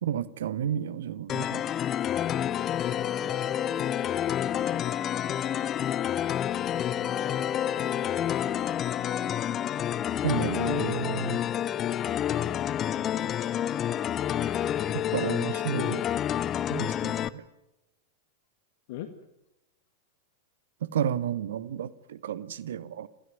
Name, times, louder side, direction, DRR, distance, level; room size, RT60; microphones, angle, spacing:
voice 1, 0.0-1.7 10.2-11.4 14.9-16.0 16.7-17.4 20.8-23.1, right 9 dB, 60° right, 1.2 m, -32 dB
sound 1, 1.3-17.3, left 10 dB, 30° left, 1.0 m, -29 dB
voice 2, 4.7-5.7 7.0-8.1 15.7-15.9 18.9-19.1, left 14 dB, 50° left, 1.7 m, -44 dB
27.5 x 15.5 x 9.4 m
figure-of-eight pair, 90°, 0 cm